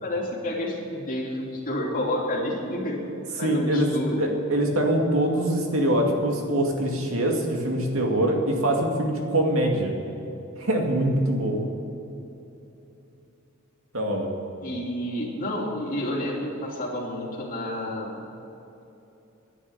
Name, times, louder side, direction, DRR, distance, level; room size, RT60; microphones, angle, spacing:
voice 1, 0.0-3.1 3.4-4.3 14.6-18.2, left 1 dB, 40° left, -2 dB, 3.0 m, -30 dB
voice 2, 3.4-3.9 4.2-9.9 10.6-11.6 13.9-14.3, right 1 dB, 80° right, 1 dB, 2.3 m, -23 dB
10.5 x 10.0 x 9.7 m, 3.0 s
head